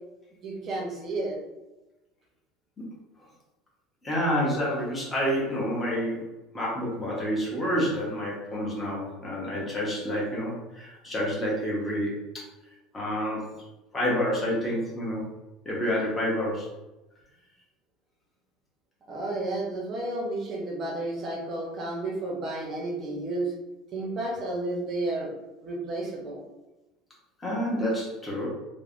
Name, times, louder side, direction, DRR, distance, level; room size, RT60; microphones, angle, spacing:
voice 1, 0.4-1.4 19.1-23.5 23.9-25.3 25.6-26.4, right 2 dB, 25° right, -2 dB, 0.6 m, -32 dB
voice 2, 4.0-6.2 6.5-12.5 12.9-13.5 13.9-15.3 15.6-16.7 27.4-28.5, equal, 10° left, -5 dB, 0.7 m, -28 dB
3.2 x 2.1 x 2.4 m, 1.0 s
cardioid pair, 175°, 0 cm